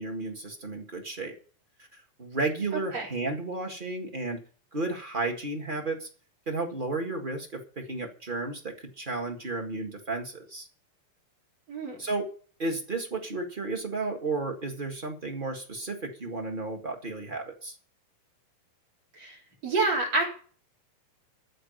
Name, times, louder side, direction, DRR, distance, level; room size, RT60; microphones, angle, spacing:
voice 1, 0.0-1.3 1.9-4.4 4.7-6.1 6.5-10.7 12.0-12.3 12.6-17.7, right 3 dB, 25° right, 3 dB, 1.1 m, -33 dB
voice 2, 19.6-20.3, right 3 dB, 50° right, 1 dB, 5.1 m, -27 dB
14.5 x 5.0 x 9.3 m, 0.42 s
omnidirectional pair, 3.7 m